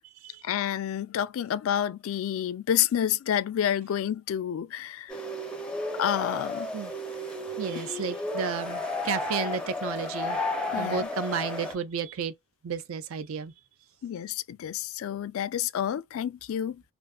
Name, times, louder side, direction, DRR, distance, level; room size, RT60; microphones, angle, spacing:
voice 1, 0.4-5.2 6.0-6.7 10.7-11.1 14.0-16.8, left 10 dB, 70° left, 0.3 m, -29 dB
sound 1, 5.1-11.7, left 2 dB, 5° left, 0.5 m, -33 dB
voice 2, 7.6-10.4 10.8-12.3 12.6-13.5, right 6 dB, 65° right, 0.4 m, -32 dB
2.4 x 2.4 x 2.3 m
head